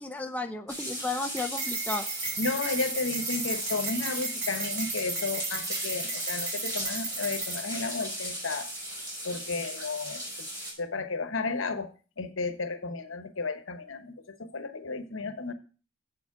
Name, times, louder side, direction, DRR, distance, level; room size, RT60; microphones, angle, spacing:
voice 1, 0.0-2.1, left 3 dB, 5° left, 5 dB, 0.4 m, -33 dB
sound 1, 0.7-10.7, equal, 20° right, 4.5 m, -37 dB
sound 2, 1.4-7.8, right 4 dB, 85° right, 2.4 m, -35 dB
voice 2, 2.4-8.7 9.2-10.5 10.8-15.5, left 3 dB, 85° left, 9 dB, 1.0 m, -33 dB
7.7 x 7.1 x 4.6 m, 0.36 s
head